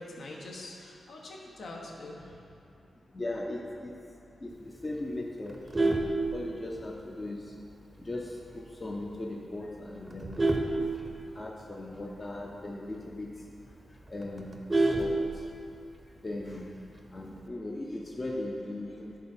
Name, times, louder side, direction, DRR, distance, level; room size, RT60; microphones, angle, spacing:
voice 1, 0.0-2.4, left 2 dB, 70° left, -2 dB, 1.1 m, -44 dB
voice 2, 3.1-3.9 4.4-6.0 6.3-7.4 8.0-10.4 10.7-10.8 11.3-13.3 14.1-15.2 16.2-16.7 17.1-19.1, left 1 dB, 25° left, -1 dB, 0.6 m, -38 dB
Vehicle horn car horn honking, 5.5-7.0 7.4-7.7 8.0-8.1 8.5-8.6 8.9-9.3 9.8-11.6 12.0-12.1 12.4-12.5 12.9-13.0 13.4-13.5 13.7-15.8 16.9-17.4, right 2 dB, 20° right, 0.6 m, -29 dB
11.0 x 3.8 x 4.4 m, 2.6 s
wide cardioid pair, 130°, 0 cm